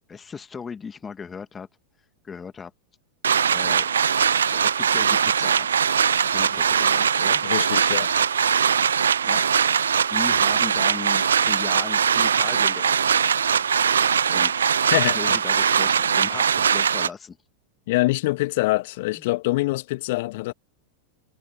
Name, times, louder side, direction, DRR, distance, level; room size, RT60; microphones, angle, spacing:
voice 1, 0.1-1.7 2.2-2.7 3.5-3.9 4.5-5.8 6.2-7.4 9.2-13.2 14.3-14.7 15.0-17.4, left 6 dB, 15° left, 2.0 m, -37 dB
sound 1, 3.2-17.1, right 7 dB, 70° right, 0.4 m, -21 dB
voice 2, 7.4-8.1 14.9-15.4 17.9-20.5, left 20 dB, 50° left, 2.1 m, -24 dB
figure-of-eight pair, 90°, 0 cm